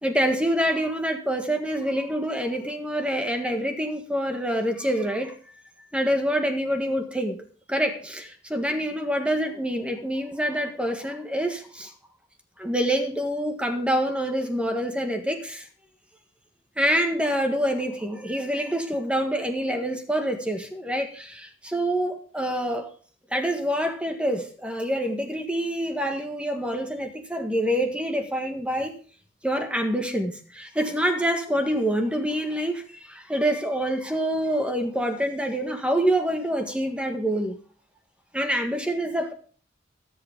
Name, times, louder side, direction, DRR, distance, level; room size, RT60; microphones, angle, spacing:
voice 1, 0.0-5.3 5.9-7.4 7.7-11.9 12.6-15.7 16.8-22.9 23.3-28.9 29.4-37.6 38.3-39.3, equal, 5° right, 1.7 m, -26 dB
20.5 x 7.9 x 3.7 m
head